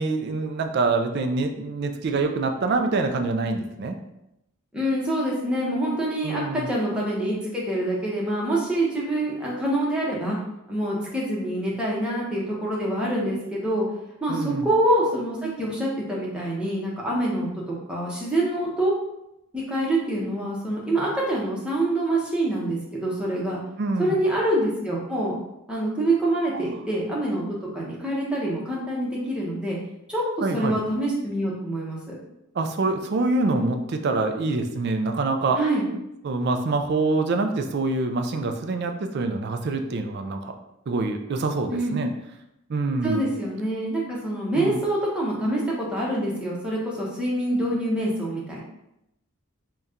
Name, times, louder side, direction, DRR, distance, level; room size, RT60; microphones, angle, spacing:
voice 1, 0.0-4.0 6.2-6.7 14.3-14.7 23.8-24.2 26.5-26.7 30.4-30.8 32.5-35.6 36.2-40.6 40.9-42.1 42.7-43.3 44.5-44.8, right 3 dB, 50° right, 6 dB, 0.4 m, -25 dB
voice 2, 4.7-10.4 10.7-13.9 14.2-17.5 17.9-18.9 19.5-23.6 24.0-25.3 25.7-27.4 27.7-29.8 30.1-30.2 30.5-32.2 35.6-35.9 41.7-42.0 43.0-48.6, right 1 dB, 5° right, -5 dB, 0.8 m, -25 dB
4.0 x 2.3 x 3.6 m, 0.85 s
head